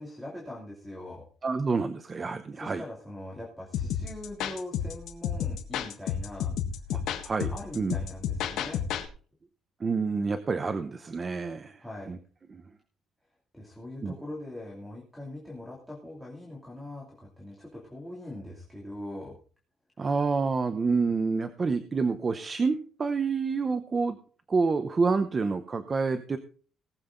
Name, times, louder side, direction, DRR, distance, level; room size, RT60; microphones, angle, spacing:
voice 1, 0.0-1.2 2.5-6.5 6.8-7.0 7.5-8.8 11.8-12.1 13.5-19.4, left 1 dB, ahead, -4 dB, 2.9 m, -42 dB
voice 2, 1.4-2.8 6.9-7.9 9.8-11.8 12.1-12.2 12.5-12.6 14.0-14.1 20.0-24.2 24.5-26.4, right 4 dB, 25° right, 9 dB, 0.8 m, -28 dB
sound 1, 3.7-9.1, left 8 dB, 85° left, 1.6 m, -32 dB
19.0 x 7.8 x 3.9 m, 0.41 s
cardioid pair, 165°, 0 cm